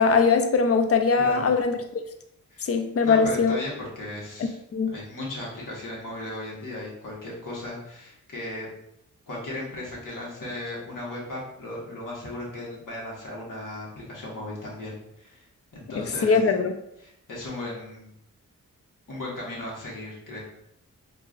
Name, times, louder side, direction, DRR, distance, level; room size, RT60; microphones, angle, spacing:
voice 1, 0.0-1.8 2.7-3.6 4.7-4.9 16.2-16.7, left 5 dB, 45° left, 6 dB, 0.5 m, -21 dB
voice 2, 1.2-1.5 2.5-2.7 3.0-4.6 4.9-8.7 9.3-15.4 15.7-16.4 17.0-18.1 19.1-20.4, left 1 dB, 75° left, -4 dB, 1.3 m, -36 dB
4.7 x 2.5 x 2.4 m, 0.76 s
wide cardioid pair, 100°, 32 cm